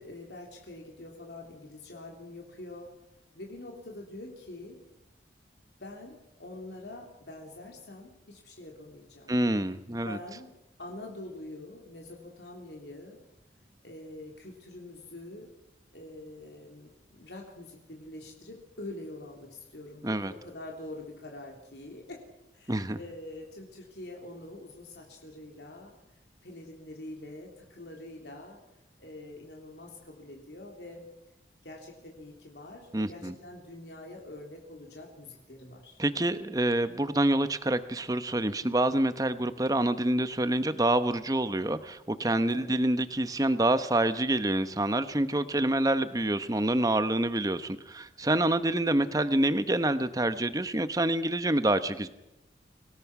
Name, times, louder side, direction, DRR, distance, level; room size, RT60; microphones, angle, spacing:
voice 1, 0.0-2.9 3.3-4.8 5.8-9.3 9.9-10.5 10.8-13.2 13.8-15.5 15.9-22.2 22.5-25.9 26.4-28.6 29.0-31.1 31.6-36.0 42.5-42.8 45.4-45.8, left 1 dB, 70° left, 0 dB, 3.2 m, -45 dB
voice 2, 9.3-10.2 20.0-20.3 22.7-23.0 32.9-33.3 36.0-52.1, right 1 dB, 20° right, 12 dB, 0.9 m, -27 dB
25.5 x 17.5 x 6.0 m, 0.92 s
head